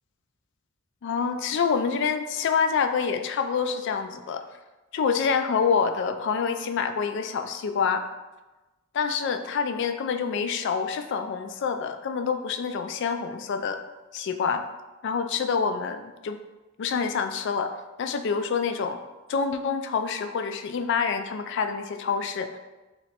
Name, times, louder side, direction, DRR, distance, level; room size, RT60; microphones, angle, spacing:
voice 1, 1.0-4.4 4.9-8.0 8.9-13.8 14.1-14.6 15.0-16.4 16.8-17.7 18.0-19.0 19.3-22.6, left 6 dB, 55° left, 8 dB, 0.3 m, -27 dB
3.3 x 3.0 x 4.1 m, 1.1 s
head